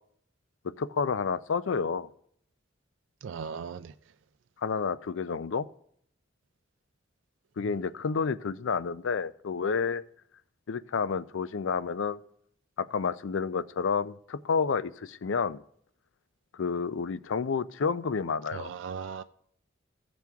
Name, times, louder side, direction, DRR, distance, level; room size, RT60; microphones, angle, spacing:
voice 1, 0.6-2.1 4.6-5.7 7.6-10.0 10.7-12.2 12.8-15.6 16.5-18.7, left 5 dB, 85° left, 0.5 m, -30 dB
voice 2, 3.2-3.9 18.5-19.2, right 6 dB, 70° right, 0.4 m, -37 dB
16.5 x 6.1 x 3.5 m
head